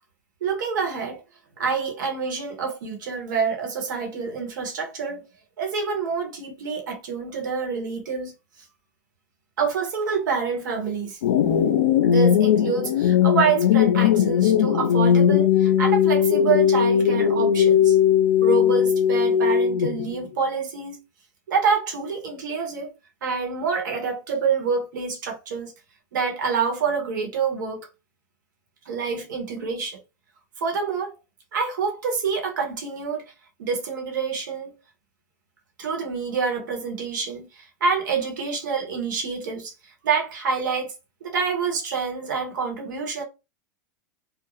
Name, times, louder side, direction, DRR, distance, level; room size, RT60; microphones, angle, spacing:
voice 1, 0.4-1.2 1.6-5.2 5.6-8.3 9.6-11.2 12.0-18.0 18.4-21.0 21.5-22.9 23.2-25.7 26.1-27.9 28.9-30.0 30.6-31.2 31.5-33.2 33.6-34.7 35.8-39.7 40.0-40.9 41.2-43.2, right 5 dB, 85° right, 1.0 m, -27 dB
sound 1, 11.2-20.2, left 9 dB, 90° left, 0.4 m, -19 dB
2.5 x 2.0 x 3.0 m
hypercardioid pair, 115°, 10 cm